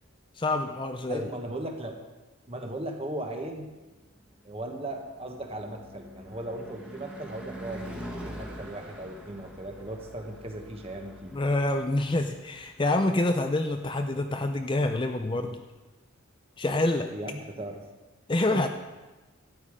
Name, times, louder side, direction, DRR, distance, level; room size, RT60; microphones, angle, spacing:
voice 1, 0.4-1.2 11.3-15.6 16.6-17.1 18.3-18.7, left 2 dB, 25° left, 5 dB, 0.4 m, -27 dB
voice 2, 1.1-2.0 2.5-3.7 4.4-11.3 15.3-15.5 17.1-17.8 18.5-18.7, right 1 dB, 25° right, 3 dB, 1.2 m, -37 dB
Car passing by / Truck / Engine, 3.9-14.2, equal, 5° right, 1.4 m, -45 dB
12.5 x 9.3 x 4.9 m, 1.2 s
head